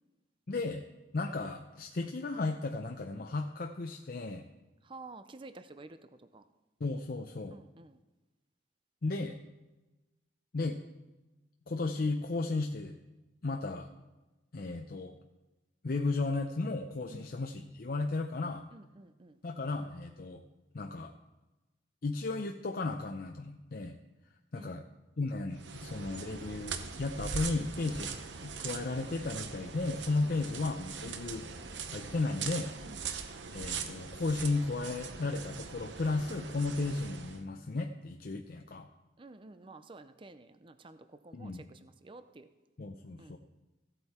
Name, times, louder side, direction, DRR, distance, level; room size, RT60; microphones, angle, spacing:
voice 1, 0.5-0.8 1.1-4.4 6.8-7.5 9.0-9.4 10.5-10.8 11.7-13.0 13.4-13.9 14.5-15.2 15.8-18.6 19.4-20.4 20.7-21.1 22.0-24.0 24.5-24.8 25.2-31.5 31.9-32.7 33.5-38.9 41.3-41.6 42.8-43.4, left 3 dB, 50° left, 4 dB, 0.6 m, -34 dB
voice 2, 4.8-6.4 7.5-8.0 17.1-17.3 18.7-19.4 24.5-24.8 27.8-28.0 30.2-30.6 31.0-31.2 32.8-33.0 39.2-42.5 43.2-43.4, right 2 dB, 30° right, 10 dB, 0.5 m, -51 dB
sound 1, 25.5-37.4, right 5 dB, 80° right, 0.8 m, -41 dB
15.5 x 8.0 x 4.3 m, 1.1 s
head